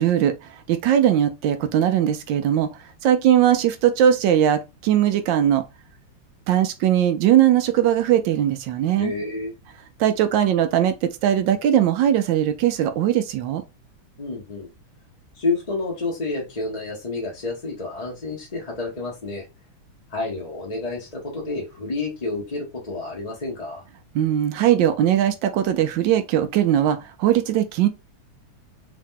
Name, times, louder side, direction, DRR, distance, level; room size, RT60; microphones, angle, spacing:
voice 1, 0.0-5.6 6.5-9.1 10.0-13.6 24.1-27.9, right 10 dB, 75° right, 1.1 m, -20 dB
voice 2, 9.0-9.5 14.2-14.7 15.3-19.4 20.1-23.9, left 3 dB, 35° left, 0.6 m, -29 dB
3.6 x 2.8 x 3.7 m
omnidirectional pair, 2.4 m